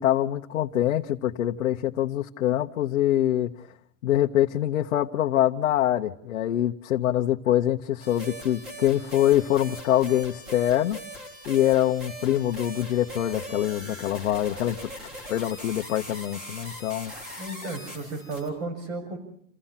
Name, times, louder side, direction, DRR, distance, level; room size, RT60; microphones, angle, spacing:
voice 1, 0.0-3.7 4.0-11.0 11.5-14.8 15.3-17.1, left 12 dB, 55° left, 1 dB, 1.0 m, -24 dB
sound 1, 8.0-18.5, equal, 20° right, 3.5 m, -41 dB
voice 2, 17.4-19.2, right 3 dB, 45° right, 8 dB, 6.6 m, -33 dB
29.0 x 16.0 x 5.8 m, 0.68 s
supercardioid pair, 180°, 46 cm